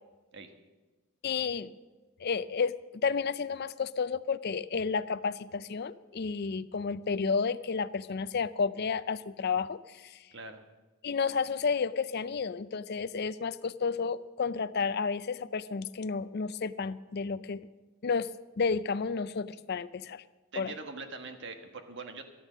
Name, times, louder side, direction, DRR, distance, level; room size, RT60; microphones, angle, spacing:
voice 1, 1.2-1.7 2.2-2.7 3.0-10.2 11.0-17.7 18.0-18.3 18.6-20.2 20.6-20.7, left 5 dB, 45° left, 15 dB, 0.4 m, -31 dB
voice 2, 10.3-10.6 20.5-22.2, right 3 dB, 55° right, 6 dB, 1.4 m, -42 dB
13.0 x 12.5 x 6.3 m, 1.2 s
head